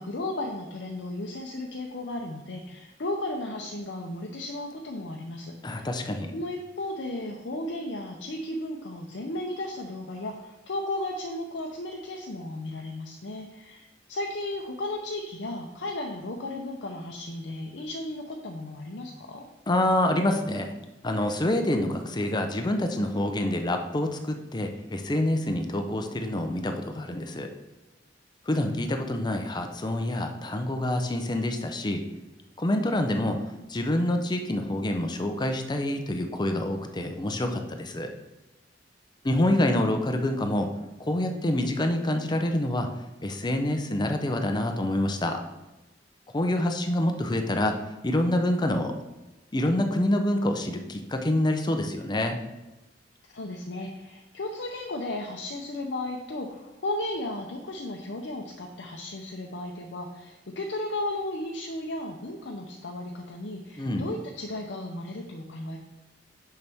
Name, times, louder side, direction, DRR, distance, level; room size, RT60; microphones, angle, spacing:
voice 1, 0.0-5.9 6.3-13.8 14.1-19.4 53.3-65.8, left 1 dB, 70° left, 1 dB, 0.7 m, -34 dB
voice 2, 5.6-6.3 19.7-20.7 21.0-27.5 28.5-32.0 32.6-33.4 33.7-38.1 39.2-40.7 41.0-42.9 43.2-45.4 46.3-47.7 48.0-48.9 49.5-52.4 63.8-64.1, left 1 dB, 25° left, 5 dB, 0.6 m, -26 dB
6.7 x 5.7 x 3.5 m, 1.0 s
head